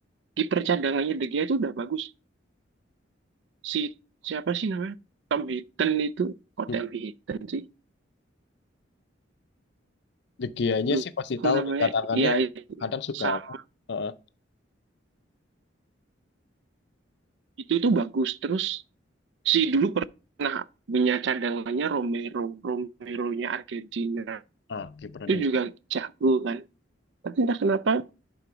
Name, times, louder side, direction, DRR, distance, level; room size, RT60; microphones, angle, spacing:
voice 1, 0.4-2.1 3.6-3.9 4.2-5.0 5.3-7.7 10.9-11.0 11.4-12.5 13.1-13.6 17.7-18.8 19.4-20.0 20.4-24.4 25.3-26.7 27.2-28.1, right 5 dB, 65° right, 0.4 m, -27 dB
voice 2, 10.4-12.4 12.8-13.4 13.9-14.1 24.7-25.4, left 5 dB, 60° left, 0.5 m, -28 dB
11.5 x 3.8 x 5.0 m
head